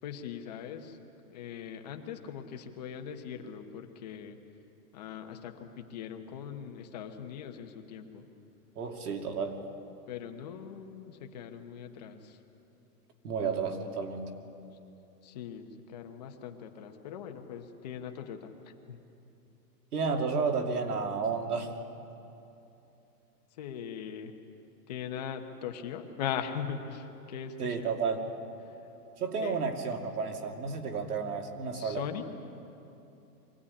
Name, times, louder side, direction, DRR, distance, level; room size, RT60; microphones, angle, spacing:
voice 1, 0.0-1.0 1.3-4.4 4.9-8.3 10.1-12.4 15.2-19.0 23.5-24.3 24.9-27.9 28.6-28.9 29.4-29.6 31.7-32.3, left 8 dB, 25° left, 5 dB, 1.1 m, -40 dB
voice 2, 8.8-9.6 13.2-14.3 19.9-21.7 27.6-28.3 29.2-32.0, right 5 dB, 70° right, 3 dB, 2.8 m, -32 dB
24.0 x 16.0 x 9.9 m, 2.9 s
hypercardioid pair, 170°, 48 cm